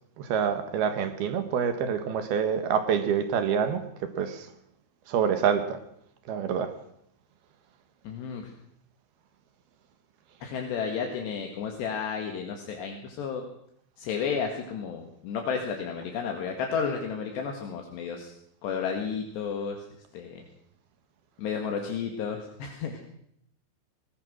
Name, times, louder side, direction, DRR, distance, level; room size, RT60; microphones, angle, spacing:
voice 1, 0.2-4.5 5.1-5.8 6.3-6.7, right 7 dB, 65° right, 9 dB, 3.0 m, -27 dB
voice 2, 8.1-8.5 10.4-13.5 14.0-18.3 18.6-19.8 20.1-20.4 21.4-23.0, left 6 dB, 70° left, 3 dB, 3.9 m, -32 dB
21.0 x 19.5 x 6.3 m, 0.74 s
omnidirectional pair, 5.3 m